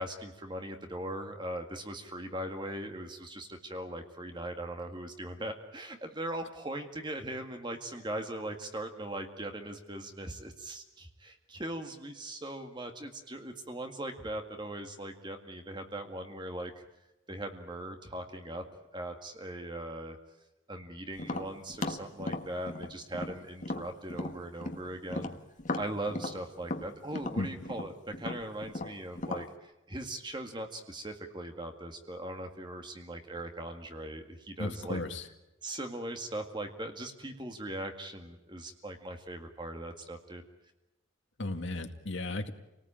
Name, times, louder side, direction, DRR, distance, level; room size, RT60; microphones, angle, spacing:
voice 1, 0.0-16.7 17.3-18.6 18.9-20.2 20.7-25.3 25.8-35.0 35.6-40.4, right 1 dB, 20° right, 5 dB, 2.0 m, -40 dB
Tap, 21.2-24.8 25.1-29.5, left 2 dB, 40° left, 1.5 m, -37 dB
voice 2, 34.6-35.3 41.4-42.5, left 2 dB, 60° left, 5 dB, 2.1 m, -34 dB
28.5 x 19.0 x 8.9 m, 0.99 s
head